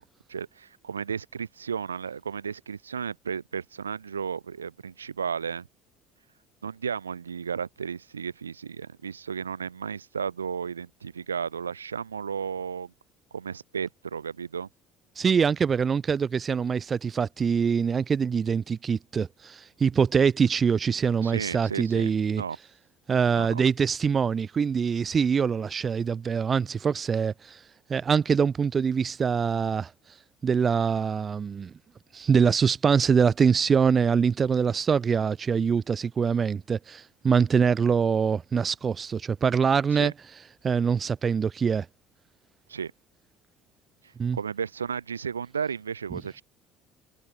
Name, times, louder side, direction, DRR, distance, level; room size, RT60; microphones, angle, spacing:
voice 1, 0.3-5.7 6.6-12.9 13.3-14.7 21.2-22.1 22.4-22.6 23.4-23.6 39.9-40.1 42.7-42.9 44.3-46.4, right 6 dB, 90° right, 1.8 m, -33 dB
voice 2, 15.2-22.4 23.1-27.6 27.9-30.2 30.4-31.7 32.1-40.1 40.6-41.9 44.2-44.4 46.1-46.2, right 6 dB, 35° right, 0.5 m, -24 dB
hypercardioid pair, 60°, 0 cm